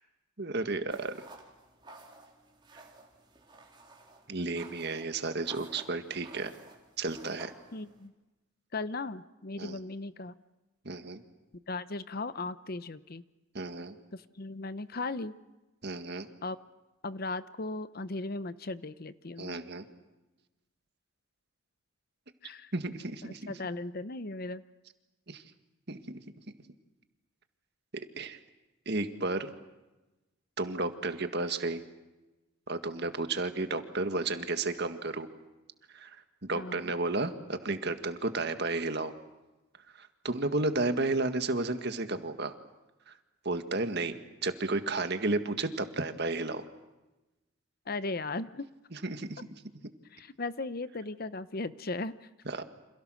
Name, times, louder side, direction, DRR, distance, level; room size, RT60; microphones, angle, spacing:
voice 1, 0.4-1.3 4.3-6.5 7.0-7.5 9.6-9.8 10.9-11.2 13.5-14.0 15.8-16.3 19.4-19.9 22.7-23.5 25.3-25.4 25.9-26.2 28.2-28.4 28.9-29.5 30.6-31.8 32.7-35.3 35.9-36.2 36.4-39.1 40.0-42.5 43.1-43.2 43.5-44.1 44.4-46.6 48.9-49.4 52.5-52.6, right 2 dB, 50° right, 8 dB, 1.9 m, -32 dB
sound 1, 0.9-8.1, right 3 dB, 20° right, 3.7 m, -54 dB
voice 2, 7.7-8.1 8.7-10.3 11.7-13.2 14.1-15.4 16.4-16.6 17.0-19.6 22.4-22.7 23.2-24.6 36.5-36.9 47.9-48.7 50.1-52.3, left 3 dB, 45° left, 14 dB, 0.8 m, -37 dB
29.5 x 27.0 x 6.4 m, 1.1 s
head